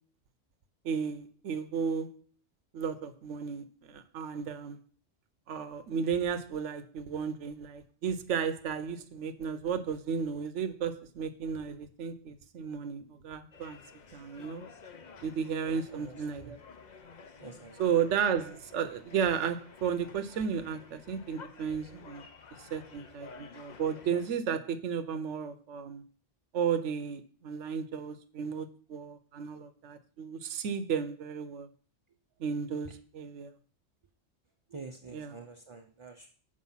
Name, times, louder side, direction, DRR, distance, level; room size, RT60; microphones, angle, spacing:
voice 1, 0.8-2.2 2.7-4.8 5.5-13.8 14.1-14.6 15.2-16.6 17.8-22.2 22.6-26.0 26.5-31.7 32.4-33.5 35.1-35.4, right 7 dB, 75° right, 9 dB, 1.1 m, -33 dB
sound 1, 13.5-24.3, left 5 dB, 45° left, 0.7 m, -52 dB
voice 2, 15.6-16.6 17.4-17.8 32.8-32.9 34.7-36.3, right 4 dB, 35° right, 3 dB, 0.5 m, -47 dB
7.5 x 5.2 x 5.6 m, 0.43 s
omnidirectional pair, 1.3 m